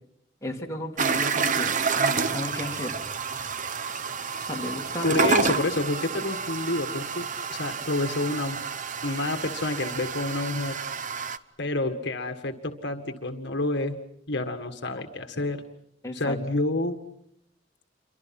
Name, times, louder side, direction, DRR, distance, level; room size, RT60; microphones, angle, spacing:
voice 1, 0.4-2.9 4.4-5.1 16.0-16.4, left 1 dB, 15° left, -1 dB, 3.0 m, -34 dB
sound 1, 1.0-11.4, right 5 dB, 45° right, 0.9 m, -29 dB
voice 2, 5.0-8.6 9.0-10.8 11.6-14.0 14.3-15.6 16.1-17.0, left 2 dB, 65° left, 6 dB, 1.8 m, -28 dB
28.5 x 24.0 x 5.9 m, 0.77 s
head